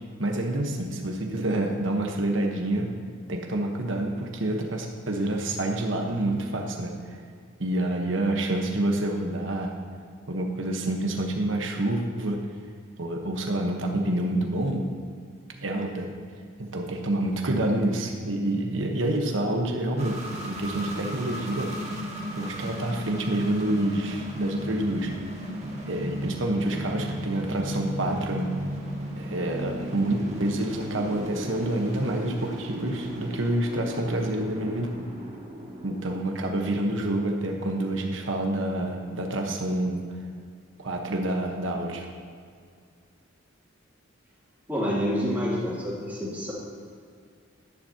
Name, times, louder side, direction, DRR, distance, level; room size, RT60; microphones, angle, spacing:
voice 1, 0.2-2.9 3.3-7.2 7.6-9.7 10.3-12.4 13.0-14.9 15.6-16.1 16.6-22.1 22.3-25.1 25.9-28.5 29.2-34.9 35.8-40.0 40.8-42.1, right 1 dB, 65° right, 2 dB, 1.2 m, -28 dB
sound 1, 20.0-38.5, equal, 35° right, 1.7 m, -36 dB
voice 2, 44.7-46.5, equal, 10° right, -8 dB, 2.9 m, -28 dB
12.0 x 10.5 x 2.9 m, 2.2 s
head